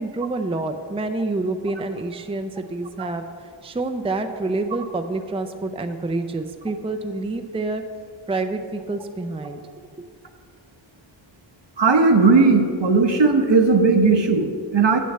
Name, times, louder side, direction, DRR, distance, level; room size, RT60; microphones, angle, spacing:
voice 1, 0.0-7.8 8.3-9.6 10.0-10.1, right 2 dB, 15° right, 7 dB, 0.5 m, -27 dB
voice 2, 11.8-15.0, right 4 dB, 65° right, 5 dB, 1.0 m, -17 dB
7.8 x 6.3 x 7.9 m, 2.1 s
wide cardioid pair, 70°, 47 cm